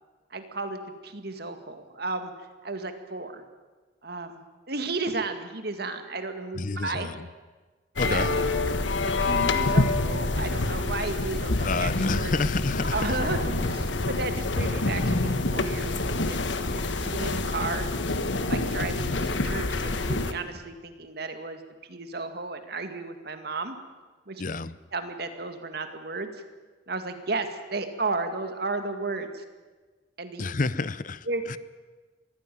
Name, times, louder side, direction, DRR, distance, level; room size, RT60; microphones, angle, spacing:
voice 1, 0.3-2.3 2.6-3.4 4.0-4.4 4.7-7.1 8.0-8.3 9.0-12.3 12.9-16.4 16.7-17.9 18.5-21.6 21.9-23.8 24.3-24.4 24.9-26.3 26.9-29.4 30.2-30.4 31.3-31.4, right 3 dB, 60° right, 7 dB, 2.1 m, -33 dB
voice 2, 6.5-7.3 8.0-8.3 11.6-13.2 24.4-24.7 30.4-31.6, left 3 dB, 45° left, 17 dB, 0.7 m, -29 dB
sound 1, 8.0-20.3, left 2 dB, 80° left, 1.5 m, -27 dB
23.0 x 15.5 x 9.3 m, 1.3 s
head